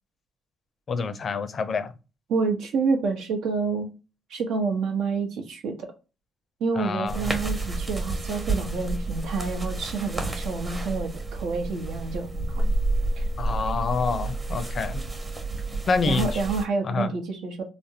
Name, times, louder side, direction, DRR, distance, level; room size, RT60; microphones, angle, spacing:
voice 1, 0.9-1.9 6.8-7.3 13.4-15.1 15.9-16.4 16.8-17.1, left 4 dB, 45° left, 0.4 m, -27 dB
voice 2, 2.3-3.9 4.3-5.9 6.6-12.6 13.2-13.3 16.0-17.7, right 4 dB, 80° right, 0.8 m, -28 dB
sound 1, 7.1-16.7, right 2 dB, 25° right, 0.8 m, -30 dB
3.3 x 2.0 x 2.7 m
cardioid pair, 90°, 0 cm